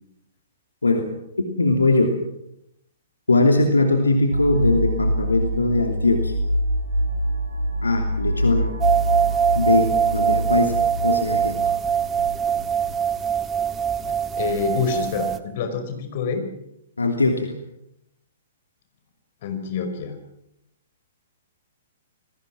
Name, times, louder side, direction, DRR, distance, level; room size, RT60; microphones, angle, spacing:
voice 1, 1.6-2.1 3.3-6.3 7.8-8.7 9.5-11.6 17.0-17.5, left 2 dB, 75° left, 4 dB, 2.9 m, -20 dB
sound 1, 4.3-13.0, right 1 dB, 75° right, 2.6 m, -25 dB
sound 2, 8.8-15.4, right 8 dB, 15° right, 1.7 m, -23 dB
voice 2, 14.1-16.4 19.4-20.2, left 5 dB, 45° left, 7 dB, 5.5 m, -27 dB
29.0 x 21.0 x 6.1 m, 0.81 s
figure-of-eight pair, 115°, 0 cm